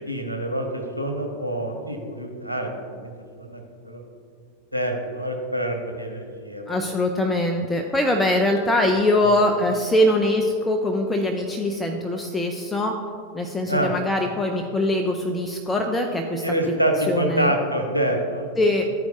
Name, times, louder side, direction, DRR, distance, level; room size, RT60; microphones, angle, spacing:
voice 1, 0.1-3.1 3.4-4.0 4.7-6.9 9.2-9.3 13.7-13.9 16.4-18.5, right 1 dB, 90° left, 3 dB, 0.9 m, -26 dB
voice 2, 6.7-12.9 13.3-16.4 17.1-17.5 18.6-18.9, left 1 dB, 10° left, 3 dB, 0.5 m, -22 dB
12.5 x 4.5 x 2.7 m, 2.3 s
figure-of-eight pair, 90°, 0 cm